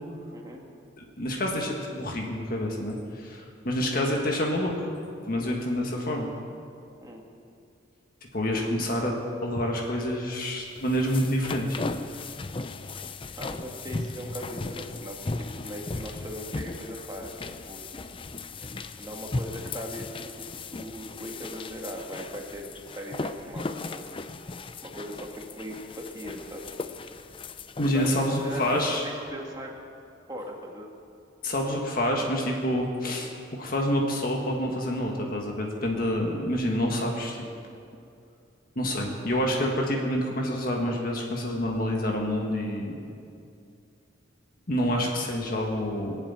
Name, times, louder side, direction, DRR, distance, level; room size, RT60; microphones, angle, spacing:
voice 1, 0.3-0.6 7.0-7.2 13.4-17.3 17.6-17.8 19.0-24.1 24.8-26.7 27.9-29.8 30.3-30.9 44.9-45.0, equal, 20° right, 0 dB, 2.0 m, -39 dB
voice 2, 1.0-4.9 5.3-6.3 8.3-9.1 9.4-11.8 27.8-29.0 31.4-33.3 33.6-37.4 38.7-43.0 44.7-46.2, equal, 50° left, 0 dB, 1.8 m, -27 dB
sound 1, 10.6-29.1, left 3 dB, 30° left, 0.5 m, -37 dB
20.5 x 7.5 x 8.9 m, 2.5 s
head